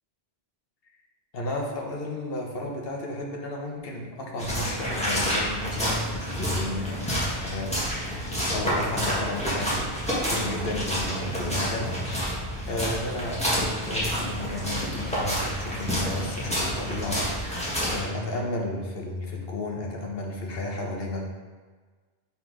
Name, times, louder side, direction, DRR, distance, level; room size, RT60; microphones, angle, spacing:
voice 1, 1.3-9.9 10.2-12.3 12.7-21.3, left 2 dB, 70° left, -1 dB, 1.2 m, -33 dB
sound 1, 4.4-18.0, equal, 5° left, 1.5 m, -29 dB
5.8 x 4.2 x 4.7 m, 1.4 s
omnidirectional pair, 1.0 m